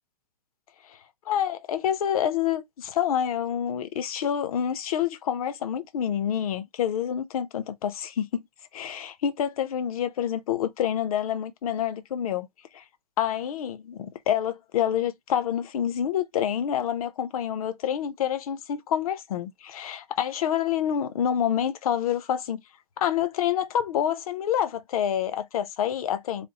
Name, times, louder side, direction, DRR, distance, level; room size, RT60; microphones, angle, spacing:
voice 1, 1.3-8.4 8.7-12.5 12.7-12.8 13.2-22.6 23.0-26.5, left 9 dB, 60° left, 0.8 m, -27 dB
3.4 x 2.1 x 3.9 m
hypercardioid pair, 155°, 20 cm